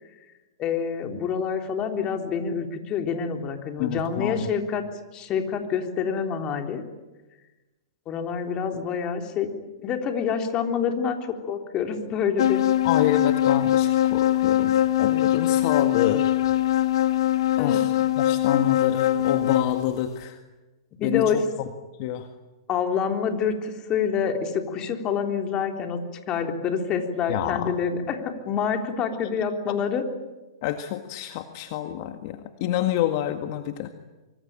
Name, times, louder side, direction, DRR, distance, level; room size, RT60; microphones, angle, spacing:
voice 1, 0.6-4.9 5.1-6.8 8.1-9.5 9.8-11.2 11.5-12.7 17.6-17.8 21.0-21.4 22.7-26.0 26.3-30.0, left 7 dB, 30° left, 4 dB, 3.7 m, -27 dB
voice 2, 3.8-4.5 12.8-16.2 17.6-20.4 21.0-21.4 22.0-22.3 27.3-27.7 30.6-33.9, left 11 dB, 50° left, 6 dB, 1.9 m, -27 dB
sound 1, 12.4-19.9, left 12 dB, 70° left, 1.3 m, -22 dB
25.0 x 25.0 x 9.0 m, 1.1 s
hypercardioid pair, 135°, 3 cm